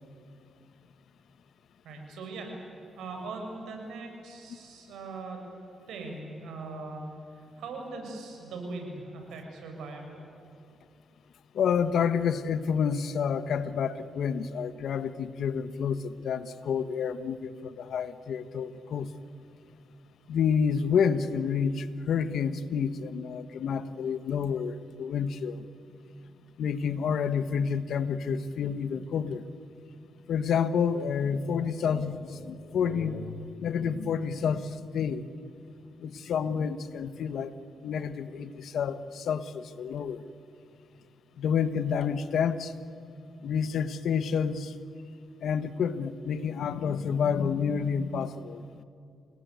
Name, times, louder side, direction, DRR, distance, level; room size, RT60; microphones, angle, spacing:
voice 1, 1.8-2.5 3.0-5.4 5.9-7.0 7.6-10.3, right 3 dB, 90° right, 2 dB, 6.4 m, -40 dB
voice 2, 11.5-19.1 20.3-25.6 26.6-29.4 30.3-35.2 36.0-37.5 37.8-40.2 41.4-42.7 43.4-44.7 45.4-48.8, left 7 dB, 75° left, 13 dB, 1.3 m, -29 dB
29.0 x 18.5 x 9.4 m, 2.5 s
cardioid pair, 80°, 0 cm